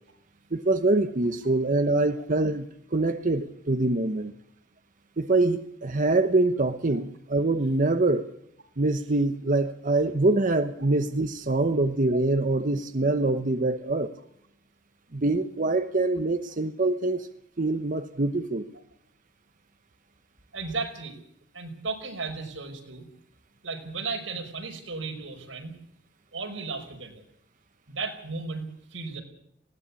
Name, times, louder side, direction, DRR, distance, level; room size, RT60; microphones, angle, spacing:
voice 1, 0.5-4.3 5.2-8.3 8.8-14.2 15.1-17.3 17.6-18.6, right 2 dB, 45° right, 8 dB, 1.0 m, -24 dB
voice 2, 20.5-21.2 21.5-23.1 23.6-25.8 26.3-27.2 27.9-28.6 28.9-29.2, right 4 dB, 90° right, 3 dB, 5.3 m, -35 dB
20.0 x 17.5 x 8.5 m, 0.72 s
head